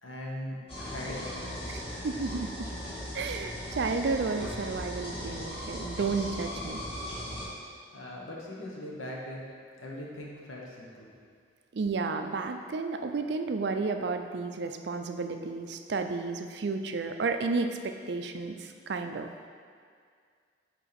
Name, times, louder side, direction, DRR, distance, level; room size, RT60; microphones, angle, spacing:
voice 1, 0.0-1.9 7.9-9.4 9.8-11.1, left 1 dB, 85° left, -3 dB, 1.2 m, -40 dB
sound 1, 0.7-7.5, equal, 30° left, 1.6 m, -38 dB
voice 2, 2.0-2.7 3.1-6.8 11.7-19.5, right 4 dB, 55° right, 6 dB, 0.4 m, -32 dB
6.8 x 4.8 x 4.3 m, 2.1 s
head